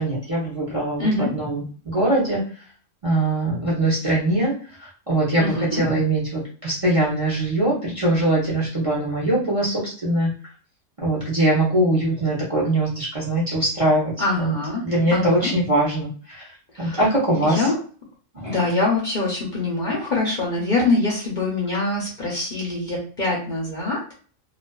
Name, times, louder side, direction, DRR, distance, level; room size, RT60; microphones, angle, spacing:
voice 1, 0.0-2.4 3.0-4.5 4.8-10.3 11.0-14.1 14.4-14.5 14.8-17.7 18.3-18.6, right 1 dB, 35° right, -5 dB, 0.7 m, -22 dB
voice 2, 1.0-1.3 5.4-5.8 14.2-14.8 15.1-15.5 16.7-17.0 17.4-17.8 18.5-24.1, left 2 dB, 50° left, -4 dB, 0.6 m, -24 dB
2.4 x 2.4 x 2.2 m, 0.42 s
omnidirectional pair, 1.3 m